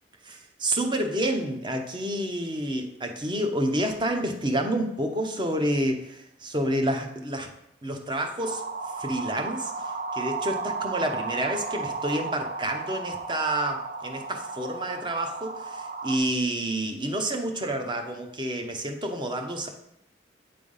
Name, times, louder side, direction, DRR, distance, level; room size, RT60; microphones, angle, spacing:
voice 1, 0.2-7.5 7.8-8.6 8.9-19.7, right 1 dB, 25° right, 5 dB, 0.8 m, -29 dB
sound 1, 8.4-16.2, right 4 dB, 50° right, 0.5 m, -34 dB
8.7 x 3.5 x 5.4 m, 0.77 s
head